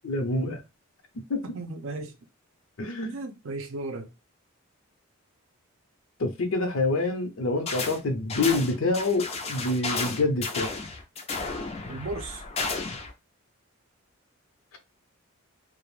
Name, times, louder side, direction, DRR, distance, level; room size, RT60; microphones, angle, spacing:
voice 1, 0.0-0.6 1.3-1.4 2.8-3.2 6.2-10.7, left 2 dB, 65° left, 0.6 m, -26 dB
voice 2, 1.5-2.2 3.0-4.1 11.9-12.4, right 2 dB, 65° right, 0.5 m, -35 dB
sound 1, 7.7-8.0 8.3-13.1, left 4 dB, 30° left, 0.4 m, -33 dB
2.3 x 2.0 x 3.1 m
head